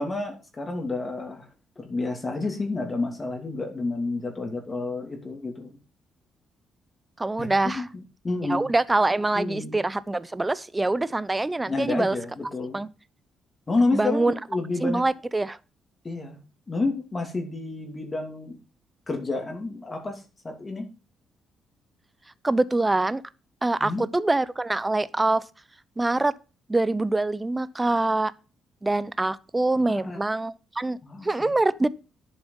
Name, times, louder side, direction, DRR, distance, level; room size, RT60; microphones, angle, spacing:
voice 1, 0.0-1.5 1.8-5.8 7.4-7.9 8.2-8.7 9.3-9.8 11.7-12.8 13.7-15.0 16.0-16.4 16.7-18.6 19.1-20.9 23.8-24.0 29.8-30.2 31.0-31.5, left 3 dB, 30° left, 2.6 m, -30 dB
voice 2, 7.2-7.9 8.4-12.2 12.7-12.9 13.9-14.3 14.8-15.6 22.4-23.2 23.6-25.4 26.0-26.3 26.7-28.3 28.8-31.0 31.2-31.9, right 2 dB, 15° right, 0.6 m, -24 dB
10.5 x 7.2 x 5.4 m
cardioid pair, 90°, 0 cm